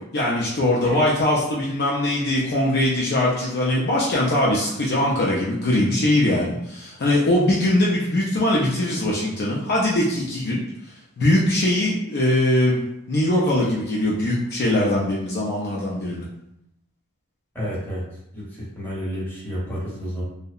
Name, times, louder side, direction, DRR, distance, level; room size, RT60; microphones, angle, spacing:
voice 1, 0.1-10.6 11.2-12.8 13.1-16.2, left 1 dB, 45° left, -4 dB, 0.4 m, -21 dB
voice 2, 17.5-18.0 18.3-20.2, equal, 10° left, -8 dB, 0.8 m, -30 dB
2.7 x 2.0 x 2.3 m, 0.81 s
head